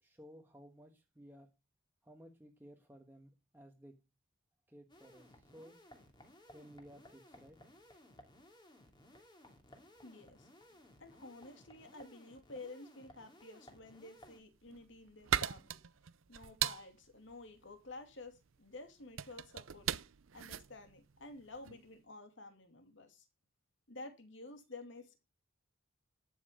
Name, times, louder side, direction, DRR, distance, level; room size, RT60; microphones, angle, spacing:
voice 1, 0.0-1.5 2.0-4.0 4.7-5.8 6.5-7.6, equal, 10° right, 1.3 m, -57 dB
sound 1, 4.9-14.4, left 1 dB, 20° left, 2.7 m, -60 dB
voice 2, 10.0-15.8 16.3-19.9 20.3-23.3 23.9-25.2, left 2 dB, 65° left, 2.6 m, -52 dB
sound 2, 14.4-21.9, right 10 dB, 75° right, 0.6 m, -40 dB
12.5 x 8.4 x 5.0 m
head